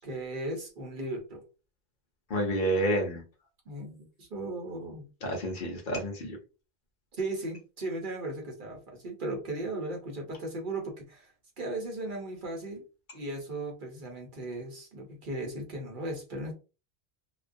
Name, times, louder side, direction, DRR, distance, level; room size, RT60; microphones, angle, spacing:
voice 1, 0.0-1.4 3.7-5.1 7.2-11.3 11.6-12.8 13.1-16.5, right 2 dB, 55° right, 1 dB, 0.9 m, -36 dB
voice 2, 2.3-3.2 5.2-6.4, right 1 dB, 55° left, 0 dB, 0.8 m, -29 dB
2.3 x 2.3 x 2.5 m, 0.32 s
omnidirectional pair, 1.1 m